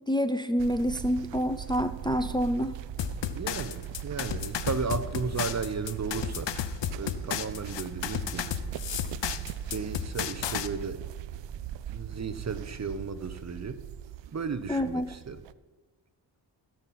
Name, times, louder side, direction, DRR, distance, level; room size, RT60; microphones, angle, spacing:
voice 1, 0.1-2.7 14.7-15.1, equal, 10° left, 9 dB, 0.6 m, -27 dB
sound 1, 0.6-15.5, right 11 dB, 75° right, 0.5 m, -40 dB
sound 2, 3.0-10.7, left 10 dB, 65° left, 0.8 m, -33 dB
voice 2, 3.3-6.5 6.9-8.5 9.7-11.0 11.9-13.8 14.3-15.4, right 5 dB, 35° right, 12 dB, 0.8 m, -34 dB
17.0 x 5.9 x 4.2 m, 1.3 s
cardioid pair, 70°, 45 cm